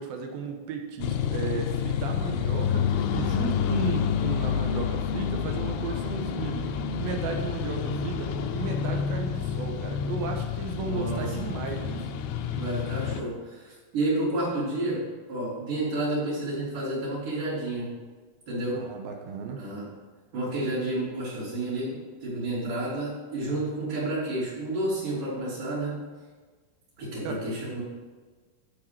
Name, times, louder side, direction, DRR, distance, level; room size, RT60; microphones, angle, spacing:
voice 1, 0.0-12.1 18.7-19.6 27.2-27.4, right 5 dB, 85° right, 3 dB, 2.6 m, -35 dB
sound 1, 1.0-13.2, left 7 dB, 85° left, 2.5 m, -29 dB
voice 2, 10.8-11.3 12.5-15.0 15.3-17.9 18.5-18.8 19.6-19.9 20.3-26.0 27.0-27.8, right 1 dB, 60° right, -13 dB, 4.6 m, -30 dB
11.5 x 5.0 x 5.9 m, 1.4 s
omnidirectional pair, 4.2 m